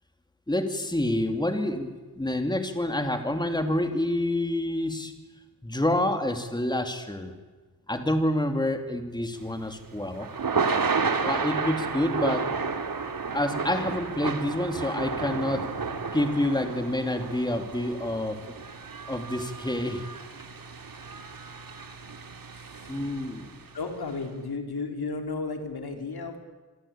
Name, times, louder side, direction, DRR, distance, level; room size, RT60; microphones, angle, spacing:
voice 1, 0.5-5.1 5.6-7.3 7.9-10.3 11.2-12.5 13.3-15.7 16.1-18.4 19.1-20.0 22.9-23.5, left 1 dB, 10° left, 6 dB, 2.7 m, -28 dB
Thunder / Rain, 9.4-23.7, right 5 dB, 65° right, 2.6 m, -32 dB
voice 2, 22.5-22.9 23.7-26.4, left 4 dB, 80° left, 5 dB, 4.0 m, -34 dB
27.5 x 22.5 x 8.7 m, 1.3 s
wide cardioid pair, 105°, 37 cm